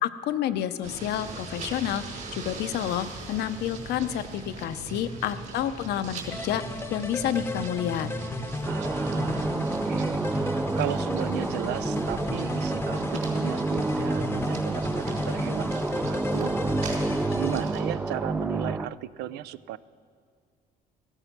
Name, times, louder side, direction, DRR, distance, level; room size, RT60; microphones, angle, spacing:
voice 1, 0.0-8.1, left 10 dB, 75° left, 11 dB, 0.7 m, -29 dB
sound 1, 0.8-17.8, right 3 dB, 50° right, 4.8 m, -40 dB
voice 2, 5.1-5.5 8.6-16.5 17.3-19.8, right 13 dB, 80° right, 16 dB, 0.5 m, -36 dB
sound 2, 6.3-17.6, left 2 dB, 15° left, 0.8 m, -34 dB
sound 3, 8.7-18.9, right 3 dB, 10° right, 0.4 m, -29 dB
15.0 x 14.5 x 6.0 m, 2.1 s
cardioid pair, 110°, 17 cm